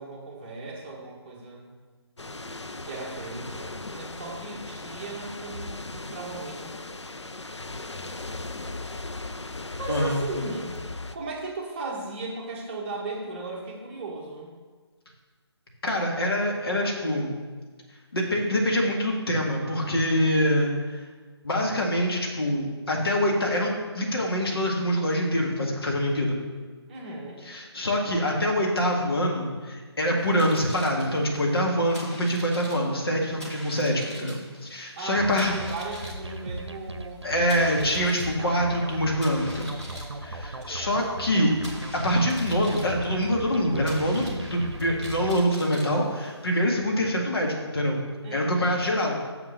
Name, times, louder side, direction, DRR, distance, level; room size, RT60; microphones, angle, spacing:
voice 1, 0.0-1.7 2.8-6.7 9.8-10.8 11.1-14.5 26.9-27.4 34.9-38.6 40.6-41.0 48.2-48.6, right 3 dB, 25° right, -3 dB, 1.5 m, -37 dB
sound 1, 2.2-11.2, left 2 dB, 85° left, 0.6 m, -37 dB
voice 2, 9.9-10.2 15.8-17.3 18.1-21.0 21.4-26.4 27.5-35.5 37.2-39.7 40.2-41.5 41.9-48.0 48.3-49.2, equal, 60° left, -1 dB, 1.9 m, -25 dB
sound 2, 30.2-46.6, equal, 5° left, 1.2 m, -45 dB
sound 3, 35.2-45.5, right 1 dB, 75° right, 0.8 m, -38 dB
6.5 x 6.0 x 6.5 m, 1.4 s
figure-of-eight pair, 150°, 14 cm